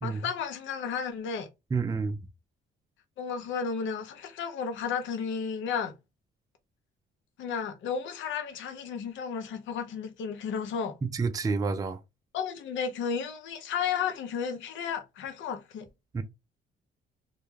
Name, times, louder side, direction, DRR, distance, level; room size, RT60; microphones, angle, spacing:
voice 1, 0.0-1.5 3.2-5.9 7.4-11.0 12.3-15.9, left 6 dB, 70° left, 0.6 m, -33 dB
voice 2, 1.7-2.2 11.0-12.0 16.1-16.2, right 4 dB, 20° right, 0.3 m, -29 dB
2.2 x 2.2 x 3.1 m
cardioid pair, 90°, 20 cm